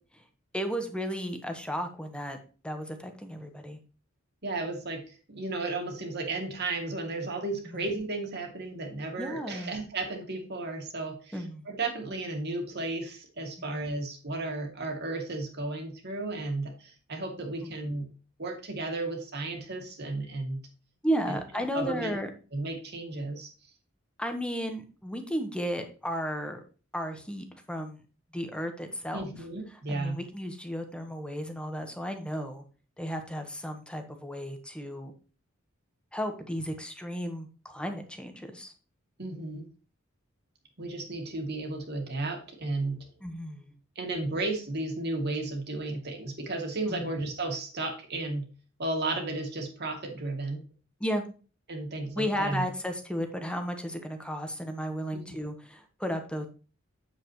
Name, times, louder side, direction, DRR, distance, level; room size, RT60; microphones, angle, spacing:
voice 1, 0.5-2.4 2.6-3.8 7.7-7.8 9.2-9.8 11.3-11.7 13.6-13.9 17.6-17.8 21.0-22.3 24.2-26.6 26.9-28.0 28.3-29.2 29.7-32.6 33.0-35.1 36.1-38.7 43.2-43.7 46.9-47.1 51.0-51.2 52.1-56.5, equal, 5° left, 5 dB, 1.2 m, -34 dB
voice 2, 4.4-11.4 11.7-18.1 18.4-20.6 21.3-21.4 21.7-22.2 22.5-23.5 29.1-30.2 39.2-39.6 40.8-43.1 44.0-48.5 48.8-50.6 51.7-52.7 55.3-55.4, right 2 dB, 55° right, 2 dB, 2.6 m, -34 dB
8.6 x 7.9 x 3.1 m, 0.36 s
head